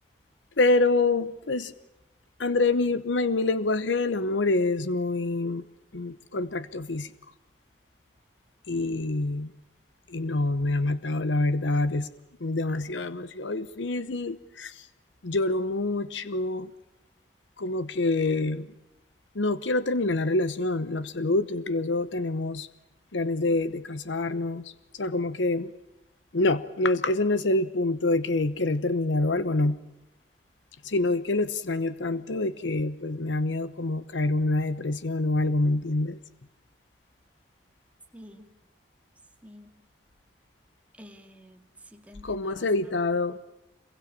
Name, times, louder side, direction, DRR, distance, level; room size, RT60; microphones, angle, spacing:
voice 1, 0.6-1.7 2.4-5.6 5.9-7.1 8.7-9.5 10.1-12.1 12.4-14.9 15.2-16.7 17.6-18.7 19.3-22.7 23.1-25.7 26.3-29.8 30.8-36.2 42.2-43.4, left 2 dB, 80° left, 0.9 m, -26 dB
voice 2, 38.1-38.5 39.4-39.8 41.0-43.0, equal, 10° right, 2.4 m, -49 dB
27.0 x 22.5 x 8.7 m
head